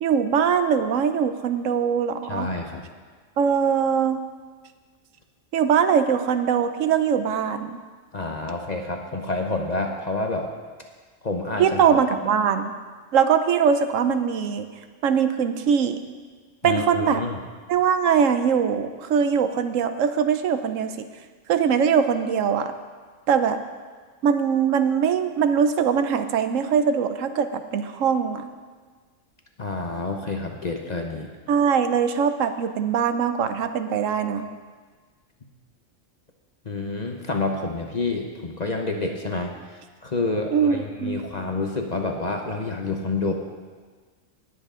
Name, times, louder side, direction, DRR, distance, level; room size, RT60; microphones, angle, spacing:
voice 1, 0.0-2.5 3.4-4.2 5.5-7.8 11.6-12.7 13.1-14.7 15.0-16.0 16.6-17.2 17.7-21.1 21.5-22.7 23.3-23.6 24.2-28.5 31.5-34.5 40.5-41.2, right 7 dB, 75° right, 9 dB, 1.0 m, -22 dB
voice 2, 2.3-2.9 8.1-10.5 11.2-11.8 16.6-17.4 29.6-31.3 36.6-39.5 40.0-43.3, left 3 dB, 40° left, 2 dB, 0.8 m, -28 dB
19.0 x 7.8 x 3.7 m, 1.5 s
omnidirectional pair, 1.4 m